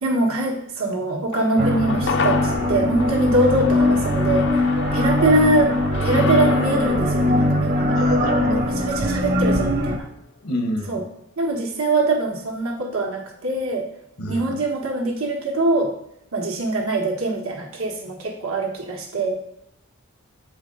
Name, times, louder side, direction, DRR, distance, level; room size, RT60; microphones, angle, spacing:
voice 1, 0.0-4.7 4.9-5.7 6.0-8.0 8.5-10.1 10.9-11.0 11.4-13.9 14.3-15.9 16.3-19.4, right 2 dB, 90° right, 0 dB, 1.6 m, -23 dB
sound 1, 1.3-9.8 10.1-10.2, left 5 dB, 55° left, 0.5 m, -31 dB
sound 2, 1.6-10.0, left 1 dB, 45° right, 0.8 m, -21 dB
voice 2, 7.9-8.9 10.4-11.1 14.2-14.5, left 1 dB, 75° left, 4 dB, 0.9 m, -28 dB
7.6 x 5.0 x 3.9 m, 0.80 s
head